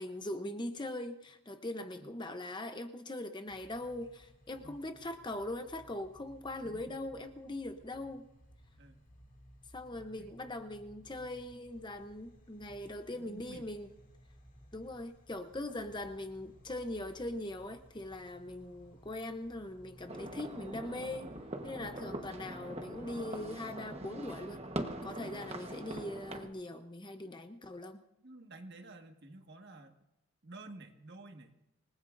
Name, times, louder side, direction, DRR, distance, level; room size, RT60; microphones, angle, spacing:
voice 1, 0.0-8.3 9.7-13.9 14.7-21.3 21.6-24.6 25.0-28.0, left 1 dB, 20° left, 7 dB, 0.8 m, -41 dB
sound 1, 3.5-23.4, equal, 40° left, 2.4 m, -59 dB
voice 2, 6.6-7.0 8.8-9.0 9.9-10.3 13.1-13.7 28.2-29.9 30.4-31.5, right 2 dB, 50° right, 4 dB, 1.7 m, -52 dB
sound 2, 20.1-26.5, right 1 dB, 30° right, 1.2 m, -42 dB
27.5 x 19.5 x 2.6 m, 0.87 s
head